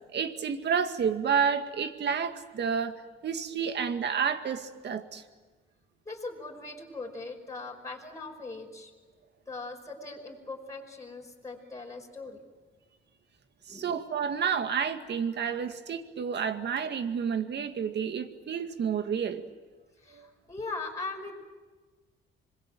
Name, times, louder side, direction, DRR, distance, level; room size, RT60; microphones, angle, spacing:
voice 1, 0.1-5.2 13.7-19.4 20.1-20.3, right 7 dB, 60° right, 8 dB, 2.0 m, -30 dB
voice 2, 6.1-8.9 9.5-12.4 13.7-13.9 20.0-21.4, left 3 dB, 15° left, -2 dB, 5.6 m, -40 dB
26.0 x 21.5 x 9.2 m, 1.3 s
cardioid pair, 90°, 20 cm